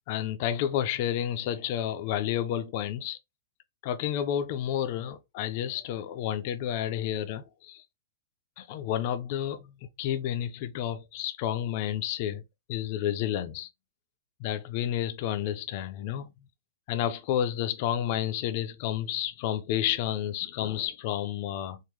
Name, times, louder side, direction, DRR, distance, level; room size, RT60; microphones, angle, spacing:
voice 1, 0.1-3.2 3.8-7.8 8.6-12.4 12.7-13.7 14.4-16.3 16.9-21.8, left 10 dB, 40° left, 0.4 m, -30 dB
3.5 x 2.1 x 3.0 m
hypercardioid pair, 155°, 0 cm